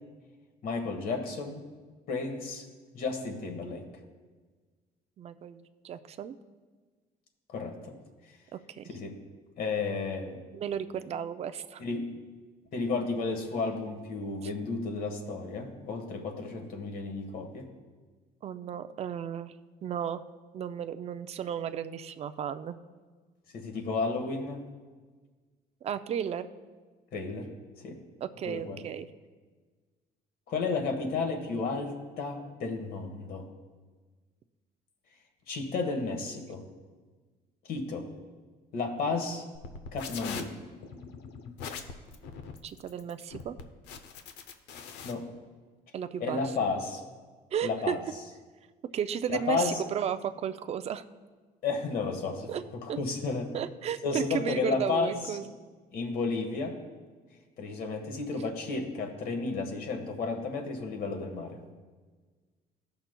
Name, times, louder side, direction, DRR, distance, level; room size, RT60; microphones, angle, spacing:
voice 1, 0.6-1.6 2.1-2.6 2.9-3.8 7.5-7.9 8.9-9.2 9.6-10.4 11.8-12.1 12.7-17.7 23.5-24.6 27.1-27.5 27.8-28.0 28.4-28.8 30.5-33.5 35.5-36.6 37.7-38.1 38.7-39.4 39.9-40.5 45.0-45.2 46.2-47.0 47.6-48.0 49.3-49.8 51.6-52.5 52.9-53.5 54.0-55.4 55.9-56.8 57.6-61.6, left 4 dB, 60° left, 4 dB, 1.3 m, -32 dB
voice 2, 5.2-6.3 8.5-8.8 10.5-11.8 18.4-19.5 19.8-20.2 20.5-22.8 25.8-26.5 28.2-29.1 42.6-43.6 45.9-46.4 47.5-48.0 48.9-51.0 52.5-52.6 52.9-53.0 53.5-55.5, right 8 dB, 40° right, 10 dB, 0.4 m, -34 dB
sound 1, 39.5-45.1, left 6 dB, 85° left, 0.7 m, -42 dB
15.5 x 5.7 x 2.2 m, 1.4 s
cardioid pair, 110°, 17 cm